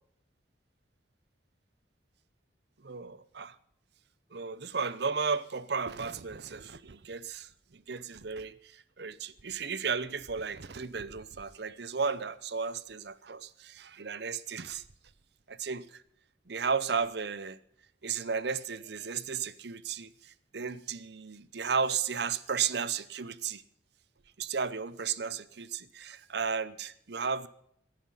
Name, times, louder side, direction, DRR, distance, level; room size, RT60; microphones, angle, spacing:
voice 1, 2.8-3.6 4.3-14.8 15.5-16.0 16.5-17.6 18.0-23.6 24.4-27.5, right 5 dB, 60° right, 0.7 m, -34 dB
16.5 x 10.0 x 5.6 m
head